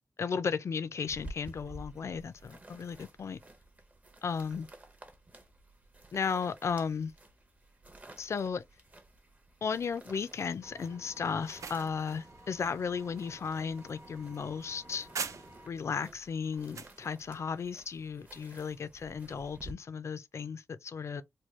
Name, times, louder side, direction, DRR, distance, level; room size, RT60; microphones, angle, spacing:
voice 1, 0.2-3.4 4.2-4.7 6.1-7.1 8.2-8.6 9.6-15.1 15.7-21.2, left 6 dB, 60° left, 0.3 m, -35 dB
sound 1, 1.1-19.7, right 1 dB, 25° right, 0.6 m, -53 dB
Engine, 10.6-15.7, right 1 dB, 60° right, 0.9 m, -54 dB
sound 2, 11.2-15.8 16.2-17.0, right 6 dB, 75° right, 0.4 m, -44 dB
3.5 x 2.2 x 3.0 m
wide cardioid pair, 125°, 5 cm